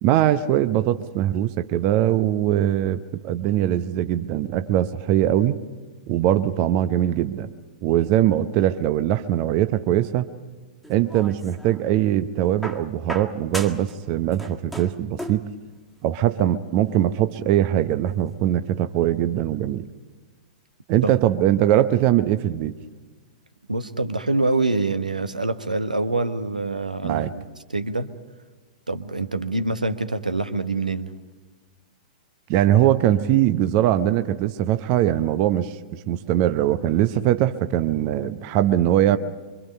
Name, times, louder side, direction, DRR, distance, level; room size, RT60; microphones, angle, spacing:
voice 1, 0.0-5.6 6.1-7.5 7.8-10.3 10.9-15.5 16.0-19.9 20.9-22.7 27.0-27.3 32.5-39.2, right 12 dB, 35° right, 10 dB, 0.9 m, -21 dB
sound 1, 10.8-11.8 12.6-14.0 14.2-15.5 16.6-16.7, right 1 dB, ahead, 1.8 m, -36 dB
voice 2, 23.7-27.4 27.7-28.1 28.9-31.1, right 2 dB, 80° right, 9 dB, 1.3 m, -25 dB
25.0 x 25.0 x 5.5 m, 1.3 s
figure-of-eight pair, 105°, 4 cm